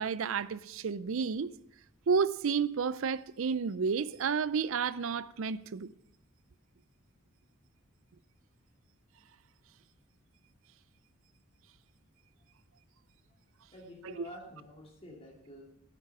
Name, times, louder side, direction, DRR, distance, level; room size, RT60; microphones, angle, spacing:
voice 1, 0.0-1.5 2.1-5.9 14.2-14.3, right 6 dB, 70° right, 0.5 m, -31 dB
voice 2, 13.7-15.6, equal, 25° left, 2.8 m, -49 dB
11.0 x 8.5 x 6.7 m
head